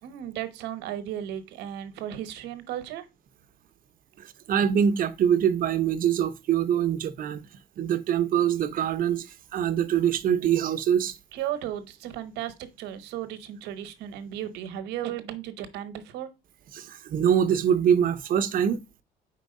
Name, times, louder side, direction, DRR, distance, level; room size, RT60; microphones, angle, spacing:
voice 1, 0.0-3.1 11.3-16.3, right 11 dB, 90° right, 1.0 m, -35 dB
voice 2, 4.2-7.4 7.8-9.3 9.5-11.1 16.7-19.0, right 9 dB, 55° right, 0.8 m, -24 dB
4.6 x 4.5 x 5.3 m
cardioid pair, 110°, 17 cm